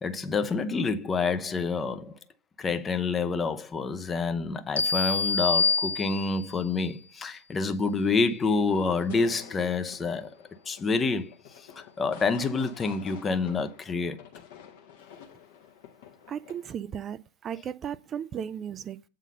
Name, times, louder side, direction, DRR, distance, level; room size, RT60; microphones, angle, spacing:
voice 1, 0.0-2.2 2.6-10.4 10.7-14.2, left 4 dB, 20° left, 0.7 m, -28 dB
sound 1, 4.8-6.6, left 4 dB, 75° left, 0.7 m, -26 dB
sound 2, 8.7-16.7, left 8 dB, 50° left, 1.3 m, -50 dB
voice 2, 16.3-19.0, right 8 dB, 25° right, 0.4 m, -35 dB
8.2 x 3.8 x 6.7 m
figure-of-eight pair, 90°, 0 cm